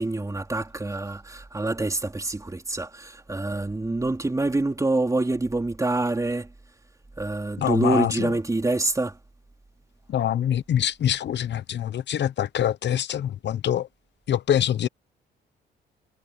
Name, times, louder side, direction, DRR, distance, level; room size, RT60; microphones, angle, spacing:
voice 1, 0.0-6.5 7.2-9.1, right 2 dB, 15° right, 2.9 m, -26 dB
voice 2, 7.6-8.3 10.1-13.9 14.3-14.9, left 10 dB, 60° left, 1.0 m, -25 dB
cardioid pair, 90°, 20 cm